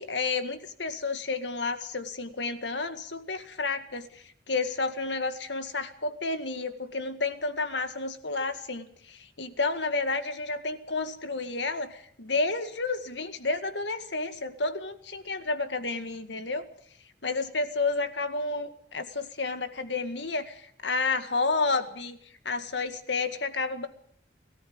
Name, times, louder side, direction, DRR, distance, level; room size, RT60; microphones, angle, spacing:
voice 1, 0.0-16.6 17.2-22.2 22.5-23.9, left 3 dB, 85° left, 9 dB, 2.0 m, -31 dB
22.5 x 14.0 x 8.8 m, 0.64 s
head